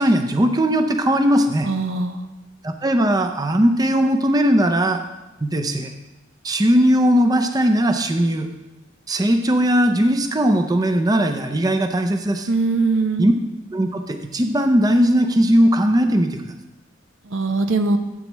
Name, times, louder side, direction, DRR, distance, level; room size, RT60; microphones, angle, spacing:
voice 1, 0.0-1.7 2.6-5.0 5.4-5.9 6.4-8.5 9.1-12.5 13.2-13.3 13.7-16.4, equal, 20° right, 6 dB, 0.5 m, -18 dB
voice 2, 1.6-2.3 12.5-13.3 17.3-18.0, right 3 dB, 80° right, 7 dB, 0.8 m, -21 dB
13.5 x 8.1 x 3.1 m, 1.0 s
head